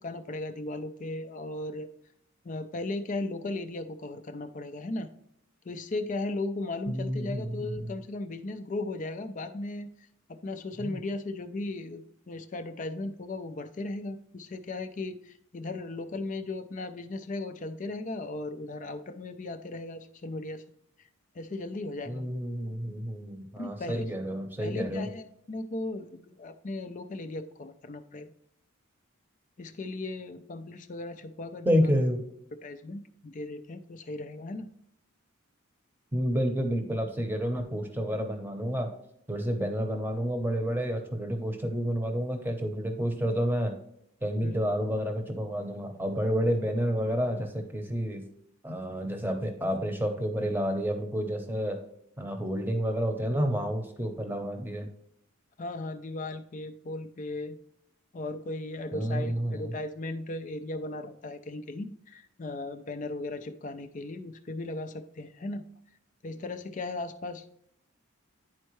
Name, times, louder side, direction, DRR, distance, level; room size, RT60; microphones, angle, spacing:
voice 1, 0.0-1.9 2.4-5.1 5.7-9.9 10.3-20.6 21.0-21.1 21.4-22.2 23.6-24.1 24.6-28.3 29.6-31.9 32.6-34.7 44.4-44.6 55.6-57.6 58.1-65.6 66.2-67.5, left 2 dB, 35° left, 9 dB, 0.4 m, -37 dB
voice 2, 6.9-7.9 10.8-11.0 22.1-25.1 31.6-32.2 36.1-38.9 39.3-43.7 44.2-48.2 48.6-51.8 52.2-54.9 58.9-59.8, equal, 10° right, 5 dB, 0.8 m, -29 dB
10.5 x 4.4 x 3.1 m, 0.73 s
head